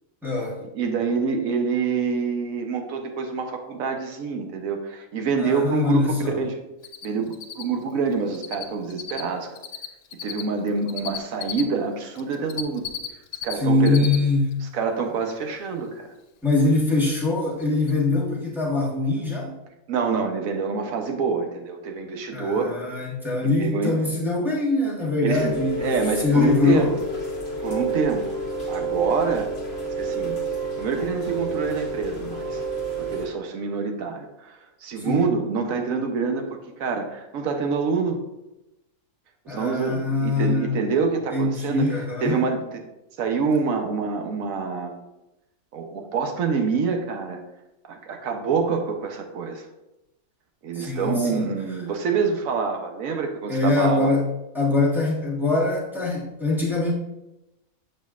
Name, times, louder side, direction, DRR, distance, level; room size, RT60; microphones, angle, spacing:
voice 1, 0.2-0.6 5.3-6.4 13.6-14.5 16.4-19.6 22.3-25.9 26.2-26.9 35.0-35.3 39.5-40.8 41.3-42.4 50.7-51.4 53.5-54.2 54.5-56.9, left 2 dB, ahead, -5 dB, 1.3 m, -23 dB
voice 2, 0.7-6.6 7.0-9.5 10.2-12.8 13.4-14.0 14.6-16.1 19.9-22.7 23.4-24.0 25.2-26.9 27.6-28.2 28.7-29.5 30.0-30.4 30.8-32.6 33.0-36.4 36.8-38.2 39.5-41.8 42.2-42.8 43.2-45.0 45.7-47.4 47.9-49.6 50.6-54.1, right 5 dB, 70° right, 4 dB, 1.2 m, -26 dB
Cricket, 6.8-7.1 7.3-8.7 8.9-11.6 12.2-13.5 13.8-14.2 14.5-14.6 17.1-17.2 17.6-17.7 17.9-18.0, left 10 dB, 90° left, 1.1 m, -33 dB
Rain, 25.3-33.3, right 3 dB, 45° left, 1.3 m, -29 dB
7.5 x 5.6 x 2.4 m, 0.95 s
omnidirectional pair, 1.5 m